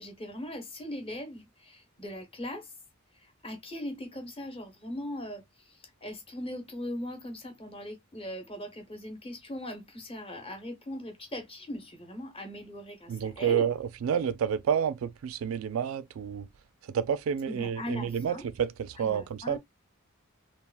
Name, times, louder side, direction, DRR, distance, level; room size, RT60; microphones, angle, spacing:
voice 1, 0.0-2.7 3.1-13.7 17.5-18.5 18.9-19.6, left 1 dB, 25° left, 1.0 m, -40 dB
voice 2, 13.1-16.5 16.9-19.6, right 8 dB, 70° right, 0.3 m, -29 dB
3.3 x 2.3 x 2.2 m
head